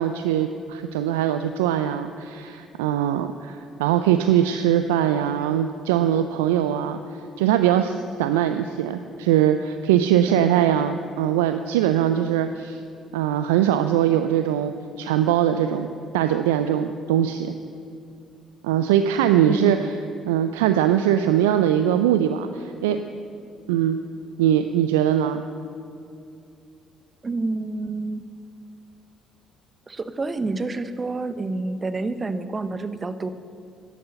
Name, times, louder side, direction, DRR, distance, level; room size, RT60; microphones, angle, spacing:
voice 1, 0.0-7.0 7.4-12.8 13.1-15.9 16.1-17.5 18.6-19.8 20.3-23.0 23.7-24.0 24.4-25.4, right 10 dB, 80° right, 9 dB, 0.4 m, -21 dB
voice 2, 19.5-19.9 27.2-28.3 29.9-33.3, right 3 dB, 30° right, 11 dB, 0.8 m, -28 dB
11.0 x 8.4 x 6.9 m, 2.5 s
hypercardioid pair, 50°, 0 cm